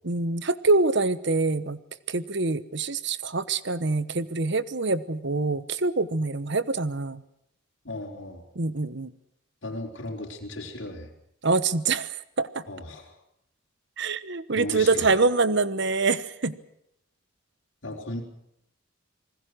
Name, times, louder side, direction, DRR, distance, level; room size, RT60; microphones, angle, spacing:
voice 1, 0.0-1.8 2.1-7.2 8.5-9.1 11.4-12.6 14.0-16.5, right 3 dB, 60° right, 15 dB, 1.1 m, -25 dB
voice 2, 7.8-8.5 9.6-11.1 12.7-13.2 14.5-15.2 17.8-18.2, left 1 dB, 60° left, -3 dB, 4.4 m, -36 dB
27.5 x 20.5 x 6.3 m, 0.77 s
head